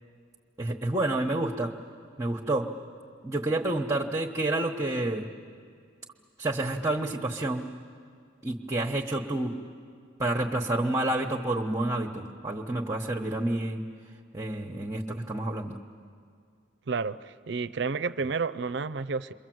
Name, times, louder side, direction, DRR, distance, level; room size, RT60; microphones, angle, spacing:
voice 1, 0.6-1.7 2.2-2.7 3.2-5.3 6.4-7.6 8.4-9.6 10.2-13.8 14.3-15.8, right 2 dB, 20° right, -1 dB, 1.1 m, -29 dB
voice 2, 16.9-19.3, right 4 dB, 60° right, 15 dB, 0.5 m, -31 dB
28.5 x 23.0 x 7.8 m, 2.3 s
head